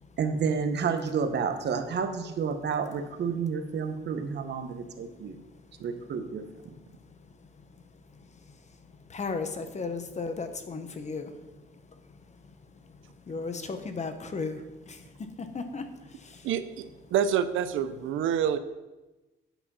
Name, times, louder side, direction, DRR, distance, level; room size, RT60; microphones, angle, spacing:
voice 1, 0.2-5.4 5.8-6.7, right 6 dB, 60° right, 8 dB, 1.0 m, -30 dB
voice 2, 7.1-7.8 8.1-12.0 12.3-13.0 13.2-16.5, left 4 dB, 35° left, 8 dB, 1.0 m, -37 dB
voice 3, 16.4-16.8 17.1-18.6, right 8 dB, 80° right, 12 dB, 0.6 m, -27 dB
8.9 x 4.9 x 5.5 m, 1.1 s
cardioid pair, 90°, 20 cm